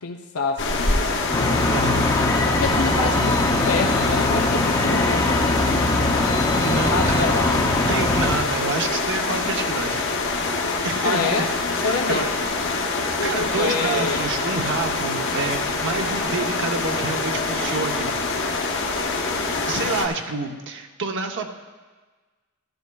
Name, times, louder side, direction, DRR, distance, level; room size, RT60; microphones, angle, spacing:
voice 1, 0.0-1.3 2.1-2.2 2.6-6.0 6.9-7.8 11.0-11.5 11.8-12.4 13.2-14.3, left 4 dB, 90° left, 3 dB, 0.6 m, -27 dB
sound 1, 0.6-20.1, left 3 dB, 60° left, 1.1 m, -25 dB
sound 2, 1.3-8.4, left 2 dB, 15° left, 0.6 m, -22 dB
voice 2, 1.7-2.1 6.6-7.4 7.9-10.1 10.8-12.3 13.2-18.1 19.6-21.5, right 3 dB, 60° right, 4 dB, 0.8 m, -28 dB
13.0 x 12.0 x 2.3 m, 1.3 s
head